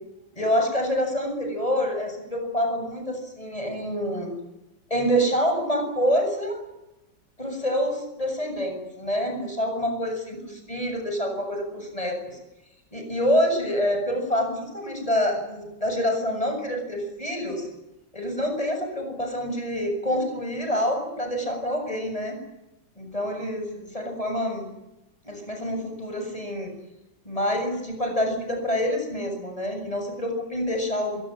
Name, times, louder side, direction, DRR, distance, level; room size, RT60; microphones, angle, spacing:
voice 1, 0.4-4.4 4.9-6.6 7.4-12.4 12.9-17.7 18.1-22.4 23.0-24.7 25.2-26.7 27.3-31.2, equal, 15° left, 4 dB, 7.2 m, -27 dB
25.0 x 22.5 x 9.0 m, 0.94 s
omnidirectional pair, 2.1 m